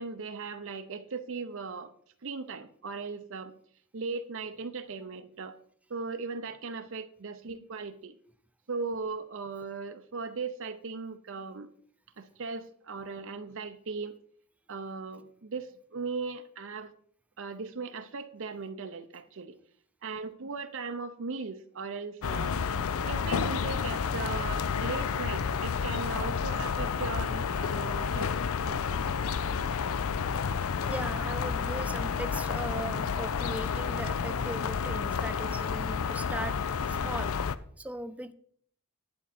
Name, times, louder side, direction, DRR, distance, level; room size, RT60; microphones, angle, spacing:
voice 1, 0.0-1.9 2.2-3.6 3.9-5.6 5.9-8.2 8.7-11.7 12.2-14.2 14.7-16.9 17.4-19.6 20.0-22.6 23.1-29.2, right 4 dB, 60° right, 9 dB, 0.6 m, -38 dB
sound 1, 22.2-37.6, left 6 dB, 75° left, 0.5 m, -30 dB
voice 2, 30.9-36.6 36.9-37.4 37.8-38.3, right 1 dB, 5° right, 11 dB, 0.4 m, -39 dB
11.0 x 8.5 x 4.2 m, 0.62 s
head